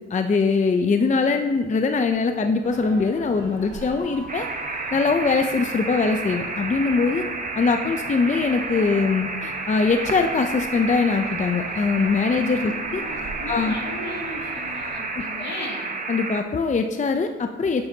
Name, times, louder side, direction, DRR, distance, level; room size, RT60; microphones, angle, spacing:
voice 1, 0.1-4.5 4.9-7.2 7.5-13.0 13.5-13.7 15.2-15.4 16.1-17.9, left 4 dB, 25° left, 6 dB, 0.5 m, -22 dB
sound 1, 2.6-14.9, right 2 dB, 55° right, 2.6 m, -41 dB
sound 2, 4.3-16.4, right 3 dB, 25° right, 1.1 m, -31 dB
voice 2, 12.6-15.9, left 2 dB, 60° left, -2 dB, 2.5 m, -37 dB
11.0 x 9.0 x 2.8 m, 1.3 s
cardioid pair, 90°, 30 cm